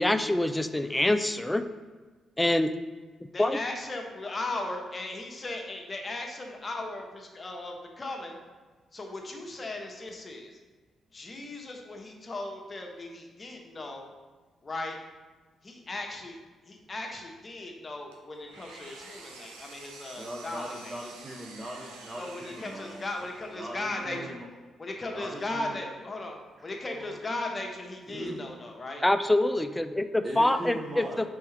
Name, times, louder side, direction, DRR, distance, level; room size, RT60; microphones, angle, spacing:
voice 1, 0.0-1.7 2.4-2.7 3.4-3.6 29.0-31.3, left 1 dB, 15° left, 10 dB, 0.3 m, -25 dB
voice 2, 3.3-8.4 8.9-10.6 11.1-14.1 14.6-15.0 15.6-16.4 16.7-21.0 22.2-24.3 24.8-29.0, left 2 dB, 40° left, 2 dB, 0.8 m, -37 dB
Engine, 18.1-23.8, right 3 dB, 85° right, 0.5 m, -49 dB
voice 3, 20.2-23.0 23.5-24.5 25.1-25.8 27.0-27.2 28.1-28.4 30.2-31.2, right 1 dB, 30° right, -3 dB, 0.8 m, -40 dB
4.4 x 3.5 x 3.2 m, 1.3 s
hypercardioid pair, 45°, 0 cm